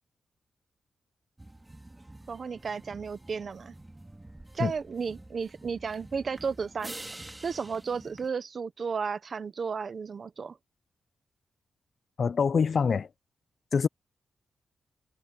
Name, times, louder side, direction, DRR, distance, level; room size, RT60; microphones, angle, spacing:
sound 1, 1.4-8.3, right 1 dB, 10° right, 2.2 m, -47 dB
voice 1, 2.3-3.7 4.5-10.6, right 5 dB, 40° right, 1.0 m, -34 dB
voice 2, 12.2-13.1 13.7-13.9, left 6 dB, 40° left, 0.4 m, -25 dB
wide cardioid pair, 175°, 0 cm